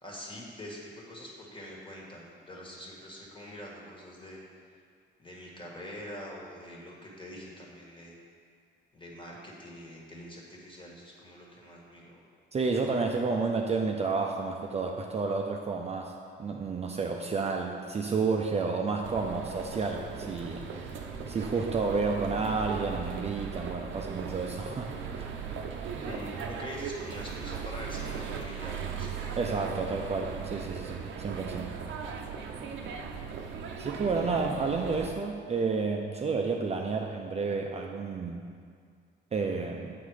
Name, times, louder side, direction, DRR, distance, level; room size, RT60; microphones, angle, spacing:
voice 1, 0.0-4.4 5.2-8.2 8.9-12.2 26.0-29.1, left 1 dB, 25° left, -3 dB, 1.6 m, -44 dB
voice 2, 12.5-16.1 16.4-20.8 21.3-25.3 29.4-31.7 33.8-38.4 39.3-39.9, right 4 dB, 30° right, 1 dB, 0.5 m, -30 dB
sound 1, 19.0-35.1, right 6 dB, 75° right, 0.6 m, -38 dB
7.7 x 3.9 x 4.8 m, 2.1 s
cardioid pair, 90°, 20 cm